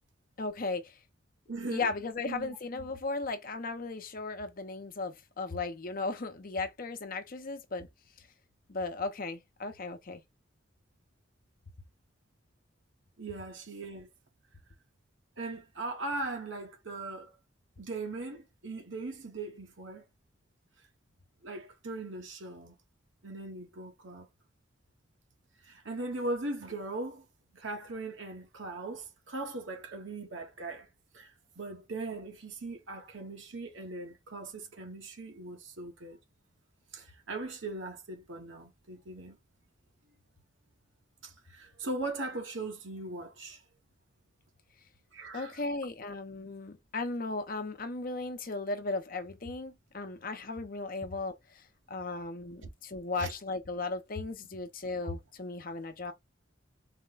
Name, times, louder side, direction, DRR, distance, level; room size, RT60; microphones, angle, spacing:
voice 1, 0.4-0.9 1.7-7.9 8.7-10.2 45.3-56.1, left 3 dB, 50° left, 0.7 m, -36 dB
voice 2, 1.5-1.9 2.2-2.6 13.2-14.1 15.4-17.3 17.8-20.0 21.4-22.7 23.2-24.3 25.6-27.2 27.5-30.9 31.1-36.2 36.9-39.4 41.2-43.6 45.1-45.6 52.6-52.7 53.2-53.3, right 2 dB, 80° right, 1.2 m, -39 dB
4.2 x 2.2 x 3.8 m
head